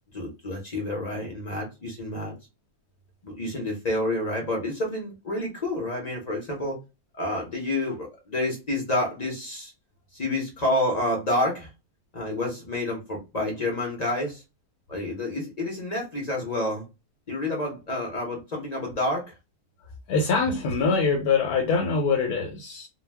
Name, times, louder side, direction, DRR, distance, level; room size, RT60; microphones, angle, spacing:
voice 1, 0.1-2.4 3.2-6.8 7.2-9.7 10.1-11.7 12.1-14.4 14.9-16.9 17.3-19.3, left 1 dB, 40° left, 0.7 m, -29 dB
voice 2, 20.1-22.9, left 4 dB, 90° left, 1.1 m, -24 dB
2.3 x 2.2 x 3.2 m
omnidirectional pair, 1.5 m